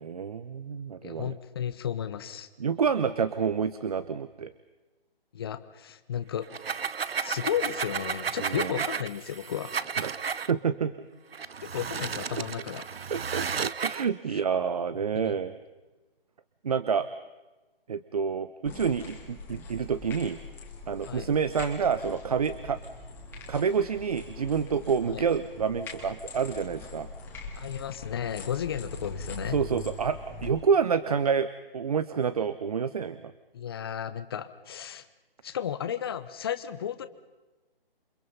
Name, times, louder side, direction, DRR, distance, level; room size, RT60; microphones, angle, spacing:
voice 1, 0.0-1.4 2.6-4.5 8.4-8.8 10.0-10.9 13.1-15.5 16.6-17.1 17.9-20.4 20.9-22.8 23.5-27.1 29.5-33.3, right 6 dB, 40° right, 14 dB, 0.8 m, -28 dB
voice 2, 1.0-2.5 5.3-6.5 7.2-9.7 11.6-12.8 14.3-14.4 15.1-15.4 21.1-21.3 25.1-25.2 27.6-29.6 33.5-35.1 35.4-37.1, left 9 dB, 25° left, 11 dB, 1.0 m, -33 dB
sound 1, 6.4-10.5 11.3-14.1, right 6 dB, 80° right, 1.0 m, -33 dB
sound 2, 18.6-30.5, left 3 dB, 5° left, 2.3 m, -42 dB
28.5 x 25.5 x 5.5 m, 1.2 s
hypercardioid pair, 165°, 29 cm